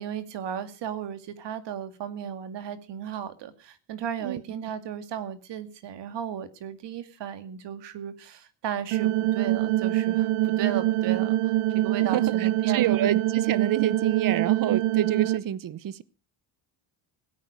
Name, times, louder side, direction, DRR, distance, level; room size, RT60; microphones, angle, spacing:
voice 1, 0.0-12.9, right 8 dB, 60° right, 2.3 m, -35 dB
voice 2, 4.2-4.7 12.0-16.0, right 11 dB, 45° right, 1.0 m, -28 dB
sound 1, 8.9-15.4, right 15 dB, 80° right, 1.0 m, -24 dB
17.0 x 9.4 x 6.6 m
cardioid pair, 120°, 48 cm